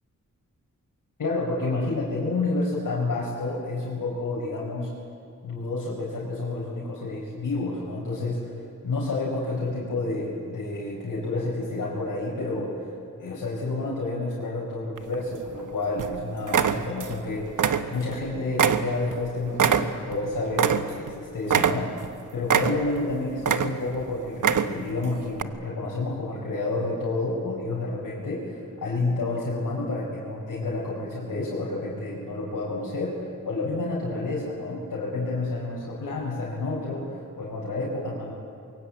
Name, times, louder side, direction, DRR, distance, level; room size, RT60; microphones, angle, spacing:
voice 1, 1.2-4.9 5.4-8.5 8.8-12.9 13.2-21.9 22.3-38.3, left 2 dB, 80° left, -5 dB, 4.8 m, -29 dB
sound 1, 15.0-15.6 16.0-16.2 16.5-17.2 17.5-18.2 18.6-21.1 21.5-22.1 22.5-23.0 23.4-24.0 24.3-24.9 25.4-25.5, right 7 dB, 75° right, 1.1 m, -24 dB
24.5 x 22.5 x 8.7 m, 2.5 s
wide cardioid pair, 160°, 32 cm